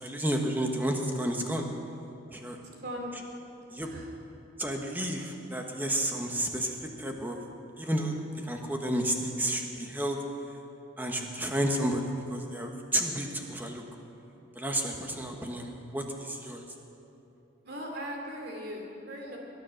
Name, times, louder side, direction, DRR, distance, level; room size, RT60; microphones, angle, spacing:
voice 1, 0.0-1.7 2.3-2.6 3.7-3.9 4.6-7.4 7.8-8.1 8.4-10.2 11.0-13.8 14.5-16.6, right 1 dB, 10° right, 2 dB, 1.2 m, -31 dB
voice 2, 2.5-3.1 3.8-4.1 17.6-19.4, equal, 50° right, 0 dB, 2.9 m, -39 dB
21.5 x 9.5 x 6.5 m, 2.9 s
head